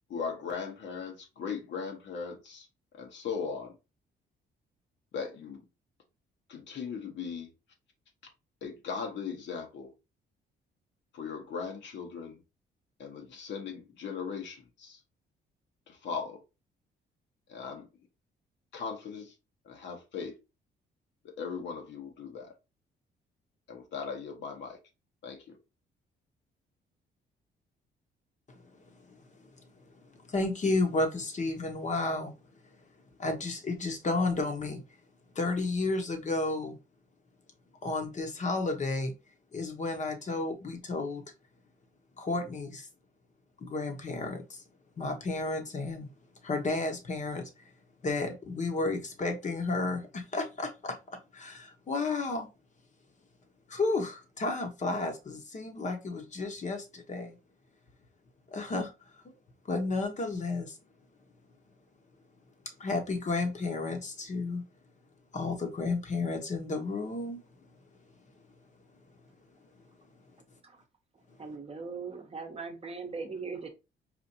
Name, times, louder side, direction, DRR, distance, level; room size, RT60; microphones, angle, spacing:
voice 1, 0.1-2.7 3.0-3.7 5.1-5.7 6.5-7.5 8.6-9.9 11.1-12.4 13.0-15.0 15.9-16.4 17.5-17.9 18.7-19.3 19.6-20.4 21.2-22.5 23.7-24.8 25.2-25.6, left 6 dB, 65° left, 1.0 m, -38 dB
voice 2, 28.5-29.5 29.8-32.4 33.2-34.8 35.3-36.8 37.8-39.1 39.5-41.2 42.2-42.9 43.6-44.6 45.0-46.1 46.4-47.5 48.0-52.5 53.7-57.4 58.5-58.9 59.6-60.8 62.7-64.6 65.3-67.4, left 3 dB, 35° left, 0.9 m, -32 dB
voice 3, 71.4-73.7, right 4 dB, 30° right, 0.8 m, -39 dB
4.2 x 2.5 x 2.7 m
cardioid pair, 90°, 20 cm